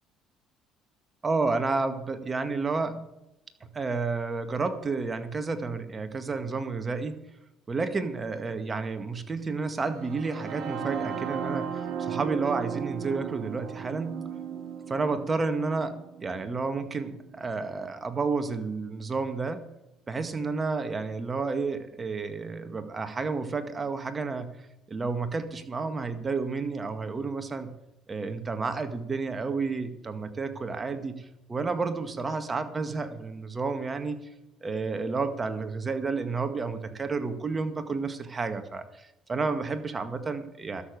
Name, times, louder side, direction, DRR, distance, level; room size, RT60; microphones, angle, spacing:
voice 1, 1.2-3.0 3.6-7.2 7.7-14.2 14.9-15.9 16.2-19.6 20.1-24.6 24.9-27.7 28.1-34.2 34.6-40.8, right 4 dB, 30° right, 8 dB, 1.9 m, -31 dB
sound 1, 9.9-17.8, right 7 dB, 65° right, 1.5 m, -36 dB
12.5 x 7.0 x 8.8 m, 0.90 s
supercardioid pair, 70°, 0 cm